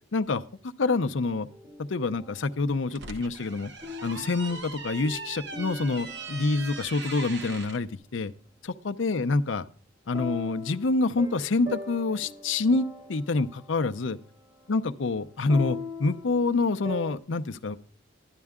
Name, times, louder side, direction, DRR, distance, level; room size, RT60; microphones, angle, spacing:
voice 1, 0.1-0.4 0.8-1.5 1.8-3.7 4.0-8.3 8.6-9.6 10.1-14.2 14.7-17.8, left 3 dB, 70° left, 10 dB, 0.6 m, -27 dB
sound 1, 1.5-2.7 3.8-7.0 10.1-17.2, left 3 dB, 20° right, 1.3 m, -41 dB
sound 2, 2.7-7.8, right 4 dB, 65° right, 0.9 m, -40 dB
12.0 x 10.5 x 3.6 m, 0.42 s
head